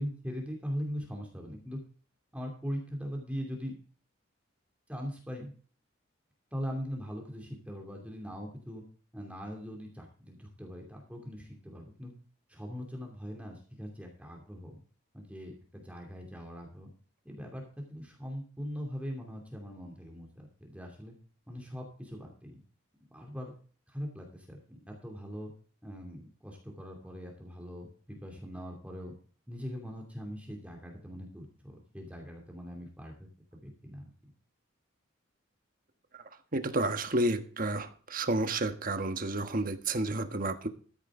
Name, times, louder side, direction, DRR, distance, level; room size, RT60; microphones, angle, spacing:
voice 1, 0.0-1.8 2.3-3.7 4.9-5.5 6.5-8.8 9.1-12.1 12.5-14.8 15.1-16.9 17.2-21.1 21.5-22.6 23.1-23.5 23.9-25.5 25.8-29.1 29.5-33.3 33.6-34.0, equal, 5° right, 1 dB, 2.6 m, -41 dB
voice 2, 36.5-40.7, right 2 dB, 45° right, 8 dB, 1.4 m, -30 dB
14.0 x 9.8 x 3.7 m, 0.41 s
head